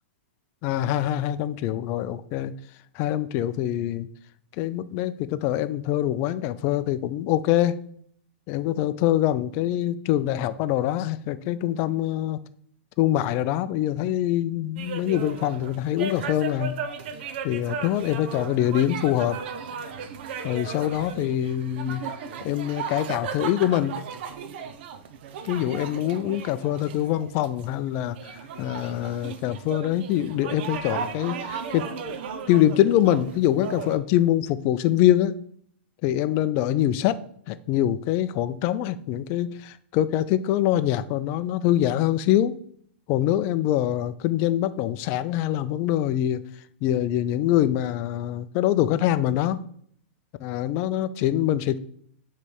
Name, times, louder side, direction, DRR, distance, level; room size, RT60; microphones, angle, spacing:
voice 1, 0.6-2.5 2.9-4.1 4.6-7.8 8.5-12.4 13.0-16.7 17.4-19.4 20.4-22.0 22.4-24.0 25.4-31.9 32.5-35.4 36.0-37.2 37.5-42.6 43.1-46.4 46.8-49.6 50.4-51.8, left 12 dB, 35° left, 14 dB, 0.4 m, -24 dB
sound 1, 14.8-34.0, right 6 dB, 55° right, 0.8 m, -36 dB
6.5 x 3.3 x 5.4 m, 0.62 s
hypercardioid pair, 140°, 7 cm